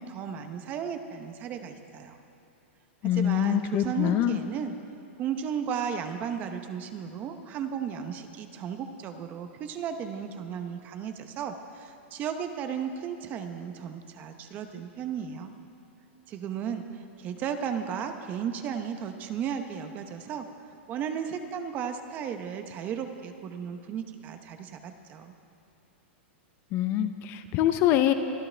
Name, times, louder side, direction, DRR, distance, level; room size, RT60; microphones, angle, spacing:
voice 1, 0.0-2.2 3.0-4.8 5.2-15.5 16.3-20.5 20.9-25.3, right 7 dB, 25° right, 7 dB, 0.8 m, -35 dB
voice 2, 3.0-4.4 26.7-28.1, left 11 dB, 30° left, 9 dB, 0.6 m, -24 dB
23.5 x 13.5 x 3.4 m, 2.6 s
supercardioid pair, 165°, 7 cm